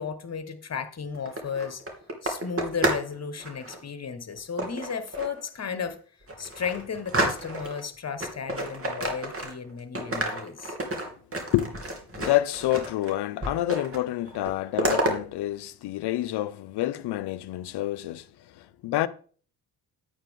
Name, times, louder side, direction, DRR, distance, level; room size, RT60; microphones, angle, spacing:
voice 1, 0.0-1.8 2.2-6.0 6.4-10.7, left 6 dB, 35° left, 1.5 m, -34 dB
sound 1, 1.1-3.1 3.4-3.8 4.6-5.4 5.9-6.0 6.3-7.8 8.2-9.7 10.0-13.1 13.4-14.0 14.3-15.1, right 1 dB, 30° right, 2.8 m, -30 dB
voice 2, 11.5-11.8 12.2-18.3 18.5-19.1, left 14 dB, 60° left, 0.8 m, -28 dB
9.7 x 8.9 x 3.8 m
hypercardioid pair, 50°, 45 cm